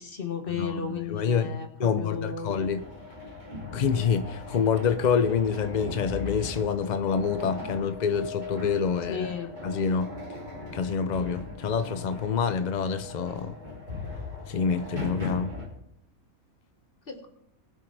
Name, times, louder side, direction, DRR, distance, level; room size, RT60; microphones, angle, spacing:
voice 1, 0.0-2.5 9.1-9.5 17.1-17.3, left 6 dB, 40° left, 1.6 m, -34 dB
voice 2, 1.1-2.8 3.7-9.3 9.6-10.1 10.7-13.6 14.5-15.5, left 6 dB, 60° left, 0.4 m, -27 dB
sound 1, 2.5-15.7, left 3 dB, 30° right, 2.8 m, -39 dB
20.5 x 8.1 x 3.3 m
omnidirectional pair, 1.5 m